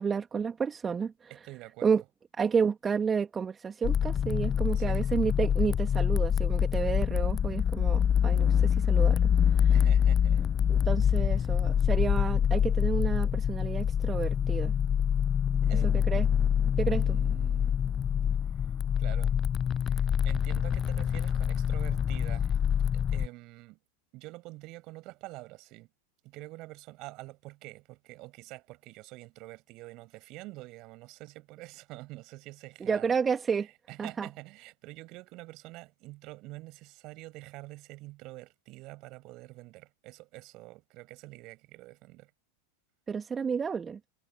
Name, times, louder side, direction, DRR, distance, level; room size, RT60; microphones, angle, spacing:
voice 1, 0.0-1.3 1.8-2.0 2.4-9.8 10.7-14.7 15.7-16.3 16.8-17.2 32.8-33.7 34.0-34.3 43.1-44.0, right 6 dB, 20° right, 2.8 m, -31 dB
voice 2, 1.3-2.0 4.7-5.0 9.7-10.5 11.2-11.3 15.5-16.0 16.9-17.8 18.6-18.7 19.0-19.4 19.8-23.8 24.1-25.9 26.2-33.1 33.5-42.3, right 21 dB, 40° right, 7.9 m, -47 dB
sound 1, 3.8-23.3, left 8 dB, 25° left, 0.7 m, -26 dB
figure-of-eight pair, 90°, 0 cm